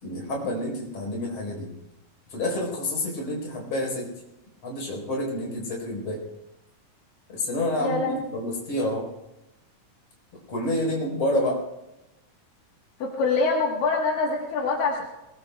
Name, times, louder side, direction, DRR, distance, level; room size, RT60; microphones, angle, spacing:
voice 1, 0.0-1.7 2.3-4.1 4.6-6.2 7.3-9.1 10.5-11.6, left 1 dB, 50° left, 0 dB, 5.5 m, -28 dB
voice 2, 7.8-8.2 13.0-15.1, left 3 dB, 85° left, -1 dB, 3.2 m, -25 dB
22.5 x 21.0 x 2.3 m, 0.94 s
omnidirectional pair, 3.8 m